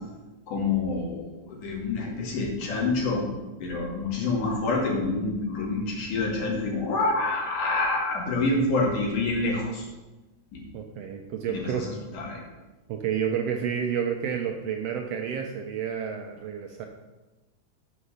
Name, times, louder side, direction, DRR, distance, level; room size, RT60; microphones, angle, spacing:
voice 1, 0.5-3.3 3.6-9.9 10.5-10.6 11.5-12.4, left 3 dB, 85° left, -2 dB, 3.8 m, -27 dB
voice 2, 10.7-11.9 12.9-16.9, right 8 dB, 75° right, 3 dB, 1.5 m, -30 dB
9.8 x 5.8 x 6.6 m, 1.1 s
omnidirectional pair, 3.5 m